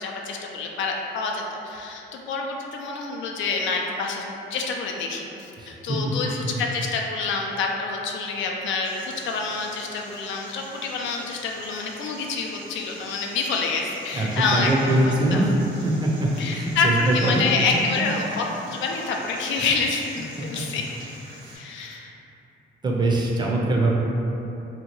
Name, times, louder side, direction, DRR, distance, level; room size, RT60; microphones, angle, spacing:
voice 1, 0.0-4.2 4.5-15.4 16.4-20.8 21.6-22.1, left 4 dB, 75° left, 0 dB, 0.4 m, -27 dB
voice 2, 5.6-6.1 6.4-6.5 14.1-15.5 15.8-17.4 17.7-18.1 19.6-19.7 21.4-22.0 22.8-23.9, right 1 dB, 20° right, -3 dB, 0.5 m, -23 dB
sound 1, 8.8-21.6, right 1 dB, 80° right, 1.1 m, -46 dB
2.8 x 2.2 x 2.9 m, 2.9 s
cardioid pair, 90°, 20 cm